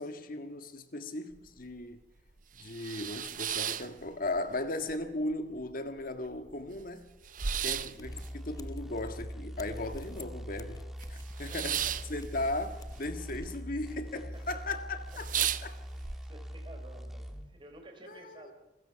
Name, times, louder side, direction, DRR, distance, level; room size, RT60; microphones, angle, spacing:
voice 1, 0.0-2.0 2.6-7.1 7.6-15.7 18.1-18.5, left 2 dB, 55° left, 1.7 m, -37 dB
sound 1, 1.3-1.4 1.8-1.9 2.4-4.6 4.9-5.6 6.0-6.1 6.3-10.4 10.7-13.5 13.7-14.3 14.7-14.8 15.1-16.2, right 9 dB, 50° right, 0.7 m, -36 dB
sound 2, 7.2-7.3 7.5-13.6, left 2 dB, 20° left, 0.9 m, -50 dB
voice 2, 7.7-8.0 11.5-12.0 14.1-14.6 15.4-15.7 16.2-18.5, right 1 dB, 30° right, 4.0 m, -53 dB
sound 3, 8.0-17.5, equal, ahead, 2.1 m, -43 dB
28.5 x 15.5 x 5.8 m
head